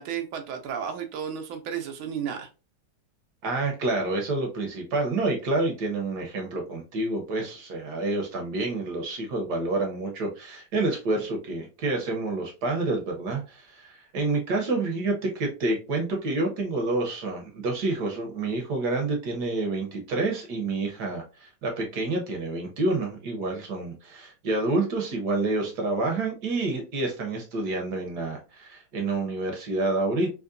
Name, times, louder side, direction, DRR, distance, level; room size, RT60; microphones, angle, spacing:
voice 1, 0.0-2.5, right 8 dB, 90° right, 1.5 m, -33 dB
voice 2, 3.4-30.3, right 2 dB, 65° right, 1.2 m, -28 dB
3.7 x 2.9 x 2.5 m
omnidirectional pair, 2.2 m